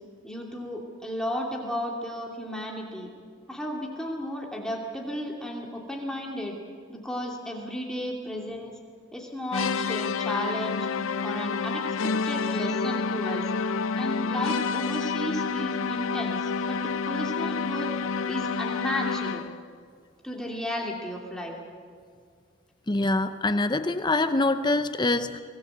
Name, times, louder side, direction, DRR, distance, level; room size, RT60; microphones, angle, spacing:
voice 1, 0.2-3.1 3.5-6.6 6.9-8.8 9.1-10.9 11.2-13.5 13.9-17.9 18.3-19.4 20.2-21.6, equal, 5° left, -1 dB, 2.6 m, -34 dB
sound 1, 9.5-19.6, left 5 dB, 75° left, 0.6 m, -29 dB
voice 2, 22.9-25.4, left 2 dB, 20° left, 10 dB, 0.7 m, -24 dB
24.5 x 18.0 x 8.0 m, 2.1 s
head